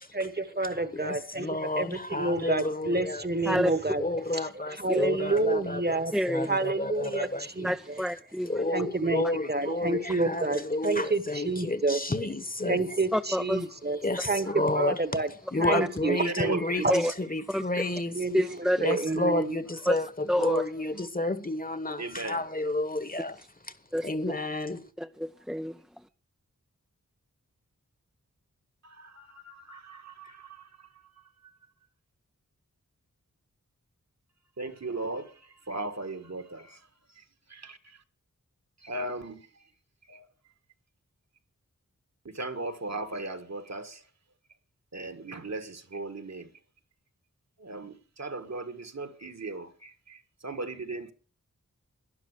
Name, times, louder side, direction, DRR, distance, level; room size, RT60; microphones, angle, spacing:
voice 1, 0.1-1.5 1.8-4.5 4.8-6.1 6.5-8.0 8.7-12.0 12.6-14.5 14.7-15.3 15.6-16.9 18.1-19.6, right 2 dB, 30° right, 1.3 m, -29 dB
voice 2, 0.9-3.3 4.0-6.0 6.3-7.7 8.0-8.1 8.4-13.1 14.0-15.0 15.5-18.2 18.8-23.4 24.0-24.8, left 2 dB, 25° left, 1.3 m, -31 dB
voice 3, 2.4-2.7 14.5-14.6 16.2-16.9 22.0-22.4 28.8-31.2 34.6-36.9 37.2-38.0 38.8-39.5 40.1-40.3 42.3-44.0 44.9-46.5 47.6-51.1, right 2 dB, 55° right, 1.7 m, -38 dB
voice 4, 6.1-6.5 7.6-8.6 13.1-13.7 16.9-17.1 17.5-17.6 18.3-18.8 19.9-20.0 20.3-20.6 23.9-24.3 25.0-25.8, equal, ahead, 0.6 m, -28 dB
12.0 x 11.0 x 6.6 m
wide cardioid pair, 55°, 32 cm